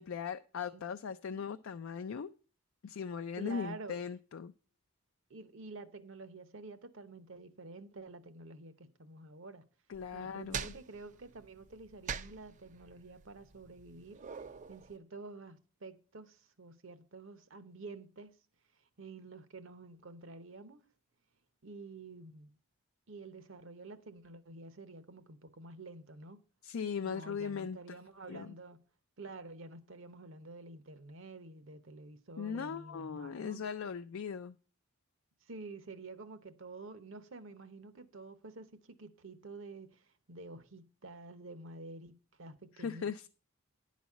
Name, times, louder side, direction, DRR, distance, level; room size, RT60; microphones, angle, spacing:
voice 1, 0.0-2.3 2.8-4.5 9.9-10.7 26.6-28.0 28.3-28.6 32.4-34.6 42.8-43.3, left 6 dB, 65° left, 0.4 m, -39 dB
voice 2, 3.4-4.0 5.3-9.6 10.1-14.3 14.7-18.3 19.0-20.8 21.6-22.6 23.1-26.4 27.0-28.8 29.2-33.6 35.5-43.3, right 3 dB, 65° right, 0.8 m, -49 dB
sound 1, 9.9-15.0, right 6 dB, 35° right, 0.4 m, -44 dB
10.5 x 4.1 x 7.2 m
head